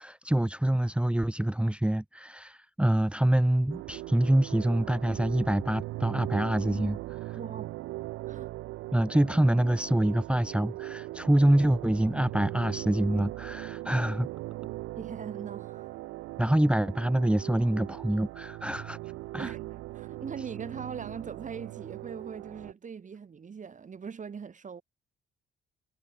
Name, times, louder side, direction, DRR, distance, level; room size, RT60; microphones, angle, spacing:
voice 1, 0.0-7.4 8.9-14.3 16.4-19.0 19.3-19.5, right 1 dB, 5° right, 1.1 m, -26 dB
sound 1, 3.7-22.7, right 18 dB, 90° right, 0.5 m, -39 dB
voice 2, 7.4-7.7 8.3-8.5 15.0-15.9 19.4-24.8, right 6 dB, 40° right, 1.9 m, -41 dB
cardioid pair, 90°, 20 cm